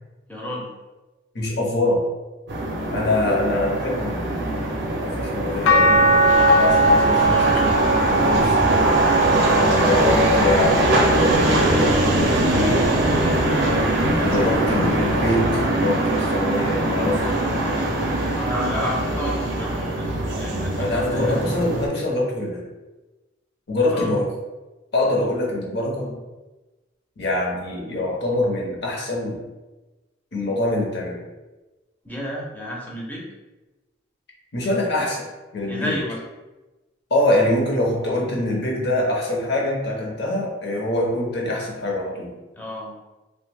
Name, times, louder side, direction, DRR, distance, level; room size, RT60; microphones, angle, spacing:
voice 1, 0.3-0.7 7.1-7.7 8.8-9.9 18.3-21.4 23.9-24.1 32.0-33.2 35.7-36.2 42.6-42.9, left 1 dB, 10° left, -3 dB, 0.5 m, -31 dB
voice 2, 1.3-2.0 2.9-4.6 5.0-7.7 8.1-8.6 9.8-11.6 11.9-13.4 14.2-17.3 20.8-22.6 23.7-24.3 24.9-26.2 27.2-29.4 30.3-31.2 34.5-35.3 35.5-36.0 37.1-42.3, left 1 dB, 55° left, -2 dB, 0.7 m, -24 dB
sound 1, 2.5-21.9, right 1 dB, 60° right, 0.5 m, -21 dB
sound 2, 5.7-12.0 12.5-13.9 15.3-15.4, right 2 dB, 80° left, 0.3 m, -21 dB
2.7 x 2.1 x 3.3 m, 1.1 s
head